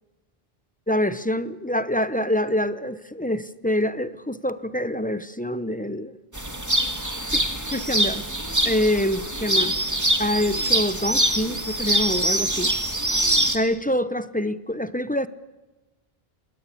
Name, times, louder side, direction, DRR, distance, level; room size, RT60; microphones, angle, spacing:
voice 1, 0.9-6.2 7.3-7.4 7.7-8.2 8.6-9.8 10.2-12.7 13.5-15.3, left 1 dB, 10° left, 13 dB, 0.8 m, -25 dB
sound 1, 6.3-13.6, right 1 dB, 15° right, 1.9 m, -24 dB
26.5 x 20.5 x 8.5 m, 1.1 s
omnidirectional pair, 1.0 m